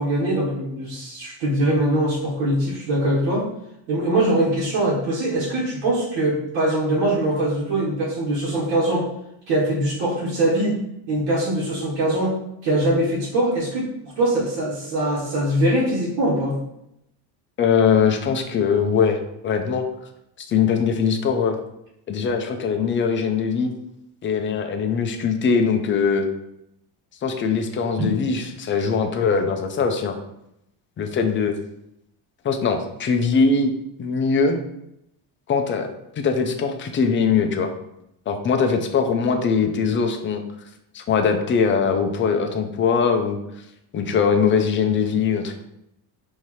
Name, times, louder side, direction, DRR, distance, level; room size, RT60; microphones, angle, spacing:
voice 1, 0.0-3.5 3.9-9.0 9.5-12.4 12.6-13.9 14.2-16.6 28.0-28.1, right 1 dB, 80° right, -6 dB, 1.4 m, -22 dB
voice 2, 17.6-19.2 19.4-19.8 20.5-21.6 22.1-23.7 24.2-26.3 27.2-30.2 31.0-31.5 32.4-33.7 34.0-34.6 35.5-35.9 36.2-37.7 38.3-40.4 40.9-43.4 43.9-45.6, left 5 dB, 30° left, 5 dB, 0.4 m, -21 dB
5.6 x 2.7 x 3.1 m, 0.81 s
cardioid pair, 150°, 45 cm